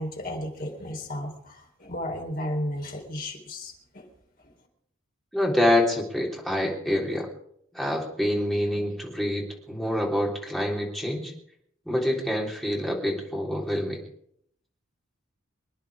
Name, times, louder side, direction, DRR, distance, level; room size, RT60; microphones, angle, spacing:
voice 1, 0.0-4.1, left 1 dB, 45° left, 2 dB, 4.0 m, -34 dB
voice 2, 5.3-7.3 7.7-11.3 11.9-14.0, left 1 dB, ahead, -2 dB, 3.6 m, -26 dB
25.5 x 10.5 x 5.0 m, 0.70 s
head